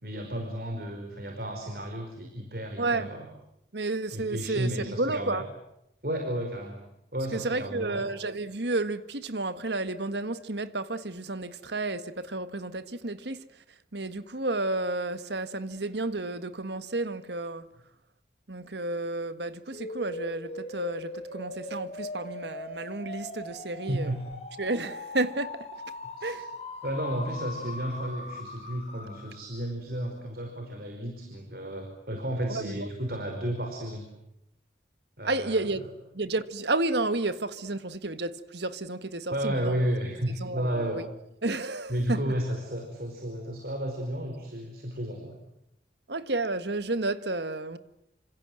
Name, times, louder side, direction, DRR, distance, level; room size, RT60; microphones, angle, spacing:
voice 1, 0.0-3.3 4.1-5.4 6.0-6.8 7.1-8.0 23.9-24.2 26.2-26.3 26.8-34.1 35.2-35.9 39.3-41.0 41.9-45.4, right 1 dB, 55° right, 4.9 m, -32 dB
voice 2, 2.8-3.1 3.7-5.4 7.3-13.4 13.9-17.7 18.5-24.1 24.6-25.7 26.2-26.5 32.5-32.9 33.3-33.4 35.2-39.8 40.4-41.0 41.4-42.3 46.1-47.8, right 2 dB, 70° right, 1.6 m, -31 dB
sound 1, 19.7-29.6, left 2 dB, 35° left, 4.4 m, -40 dB
29.5 x 26.0 x 7.8 m
head